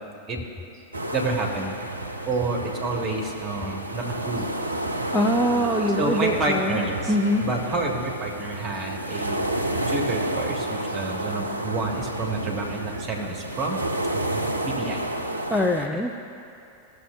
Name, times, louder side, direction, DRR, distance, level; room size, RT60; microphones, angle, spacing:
sound 1, 0.9-15.9, right 1 dB, 80° right, 0.5 m, -30 dB
voice 1, 1.1-1.8 2.3-4.5 6.0-7.1 7.4-9.5 9.9-13.8 14.6-15.0, right 2 dB, 25° right, 1 dB, 1.3 m, -29 dB
voice 2, 5.1-6.8 7.1-7.5 15.5-16.1, equal, ahead, 0 dB, 0.4 m, -23 dB
15.0 x 6.7 x 2.4 m, 2.8 s
figure-of-eight pair, 90°, 0 cm